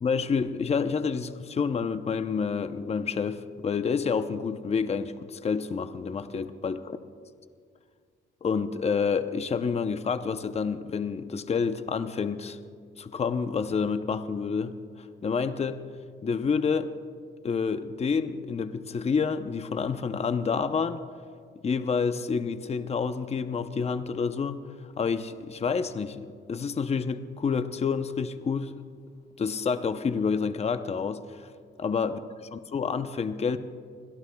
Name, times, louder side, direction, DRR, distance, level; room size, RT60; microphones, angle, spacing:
voice 1, 0.0-7.0 8.4-12.6 13.0-15.8 16.2-16.9 17.4-21.0 21.6-24.6 25.0-28.8 29.4-31.5 31.8-32.2 32.5-33.6, left 5 dB, 30° left, 10 dB, 0.7 m, -28 dB
27.0 x 21.0 x 2.3 m, 2.1 s
cardioid pair, 90°, 20 cm